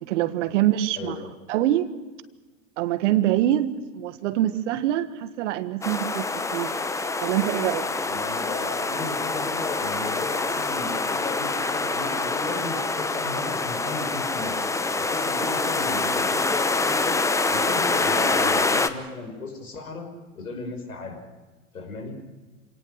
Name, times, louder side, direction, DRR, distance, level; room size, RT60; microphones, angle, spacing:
voice 1, 0.0-1.2 1.5-1.9 2.8-6.7 7.2-7.9, right 13 dB, 55° right, 1.6 m, -24 dB
voice 2, 1.0-1.3 8.1-14.6 15.0-17.2 17.5-20.1 20.3-21.2 21.7-22.2, left 3 dB, 85° left, 5.8 m, -35 dB
sound 1, 5.8-18.9, left 3 dB, 5° left, 0.8 m, -26 dB
27.0 x 18.5 x 6.5 m
hypercardioid pair, 100°, 43 cm